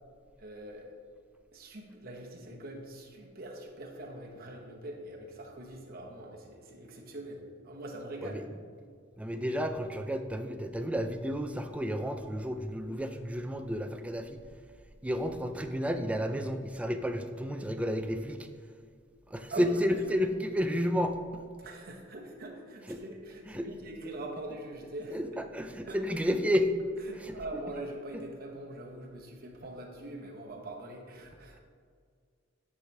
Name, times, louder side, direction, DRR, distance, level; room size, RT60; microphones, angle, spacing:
voice 1, 0.4-1.0 1.5-8.5 19.5-20.1 21.6-25.2 25.9-26.0 27.0-31.6, right 1 dB, 50° right, 0 dB, 1.1 m, -43 dB
voice 2, 9.2-14.4 15.0-18.5 19.3-21.4 22.9-23.0 23.5-23.7 25.1-26.7 27.2-27.3, equal, 5° right, 6 dB, 0.3 m, -31 dB
9.6 x 4.8 x 3.3 m, 2.1 s
head